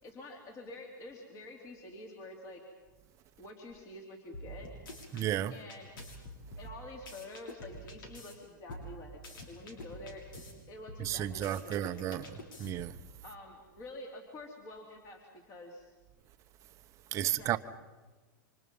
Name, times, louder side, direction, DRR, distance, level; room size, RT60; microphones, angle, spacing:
voice 1, 0.0-2.6 3.4-4.7 5.5-5.9 6.6-9.2 9.5-12.4 13.2-15.9 17.2-17.6, left 2 dB, 30° left, 3.4 m, -48 dB
sound 1, 4.3-5.3 5.7-8.3 8.7-10.5 10.9-13.0, equal, 80° left, 6.9 m, -47 dB
voice 2, 5.1-5.5 11.0-12.2 12.6-13.0 17.1-17.6, right 12 dB, 30° right, 0.9 m, -32 dB
29.0 x 25.5 x 5.5 m
supercardioid pair, 150°, 11 cm